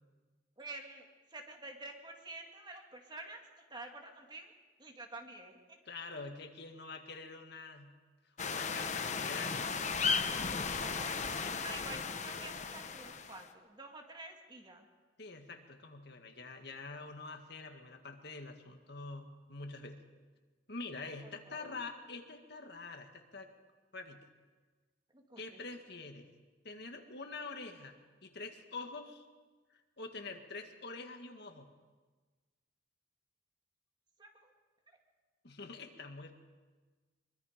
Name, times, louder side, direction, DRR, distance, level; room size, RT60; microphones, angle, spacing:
voice 1, 0.6-3.4 3.7-4.5 4.8-5.8 10.8-14.9 21.5-21.8 25.1-25.6 34.2-34.5 34.9-35.0, right 2 dB, 25° right, 2 dB, 2.2 m, -49 dB
voice 2, 5.9-7.9 8.5-9.7 10.8-11.1 11.4-11.5 15.2-20.0 20.7-23.5 23.9-24.3 25.4-26.3 26.6-29.3 29.7-31.7 35.4-36.3, left 3 dB, 55° left, 5 dB, 1.8 m, -46 dB
sound 1, 8.4-13.5, left 5 dB, 40° left, 1.2 m, -35 dB
24.0 x 23.0 x 5.1 m, 1.3 s
head